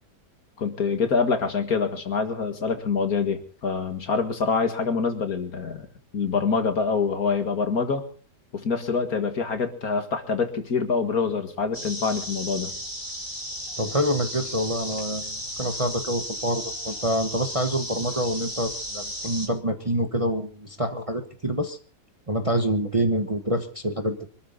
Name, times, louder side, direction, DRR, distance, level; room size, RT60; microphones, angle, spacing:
voice 1, 0.6-5.9 6.1-8.0 8.5-12.8, left 5 dB, 55° left, 7 dB, 2.3 m, -25 dB
sound 1, 11.7-19.5, equal, 15° left, 4.2 m, -35 dB
voice 2, 13.8-21.8 22.3-24.2, equal, 20° right, 6 dB, 1.2 m, -26 dB
25.0 x 13.0 x 4.0 m, 0.41 s
omnidirectional pair, 1.8 m